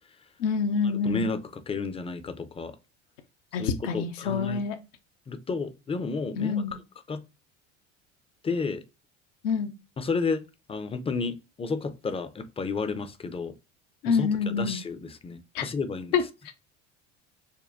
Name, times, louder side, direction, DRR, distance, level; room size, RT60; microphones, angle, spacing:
voice 1, 0.4-1.2 3.5-4.7 6.4-6.7 9.4-9.7 14.0-14.8 15.5-15.6 16.1-16.2, left 6 dB, 75° left, 0.8 m, -26 dB
voice 2, 0.9-2.8 3.5-4.6 5.3-6.6 7.1-7.2 8.4-8.8 10.0-13.5 14.1-16.1, left 4 dB, 15° left, 0.5 m, -32 dB
5.3 x 2.2 x 2.5 m
hypercardioid pair, 75°, 38 cm